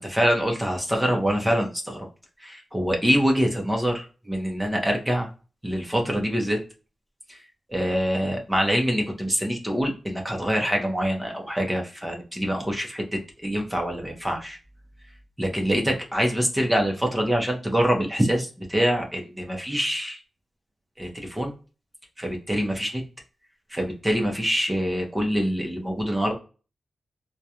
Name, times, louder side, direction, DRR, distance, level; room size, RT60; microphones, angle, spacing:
voice 1, 0.0-2.1 2.4-5.3 5.6-6.6 7.3-7.4 7.7-14.6 15.4-20.2 21.0-21.5 22.2-23.0 23.7-26.3, equal, 10° right, 2 dB, 0.7 m, -25 dB
2.3 x 2.2 x 2.8 m, 0.35 s
cardioid pair, 75°, 0 cm